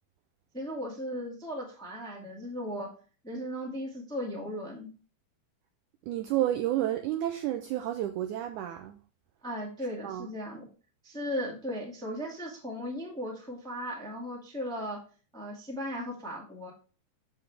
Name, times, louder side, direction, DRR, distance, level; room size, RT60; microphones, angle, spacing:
voice 1, 0.5-2.9 3.2-4.9 9.4-10.7 11.0-15.0 15.3-16.7, equal, ahead, 0.9 m, -36 dB
voice 2, 6.1-9.0 10.0-10.3, right 13 dB, 85° right, 1.7 m, -30 dB
7.6 x 6.7 x 3.4 m
omnidirectional pair, 4.1 m